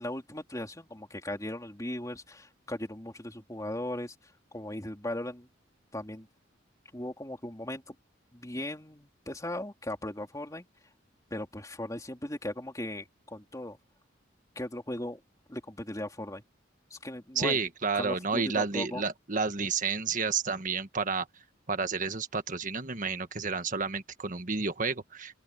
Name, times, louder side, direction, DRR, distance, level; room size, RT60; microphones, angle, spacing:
voice 1, 0.0-5.5 5.9-6.3 6.9-7.9 8.3-10.6 11.3-13.8 14.5-15.2 15.5-16.4 16.9-17.6 17.9-19.0, left 1 dB, 20° left, 3.4 m, -38 dB
voice 2, 17.3-21.3 21.7-25.3, right 4 dB, 45° right, 1.5 m, -30 dB
open air
head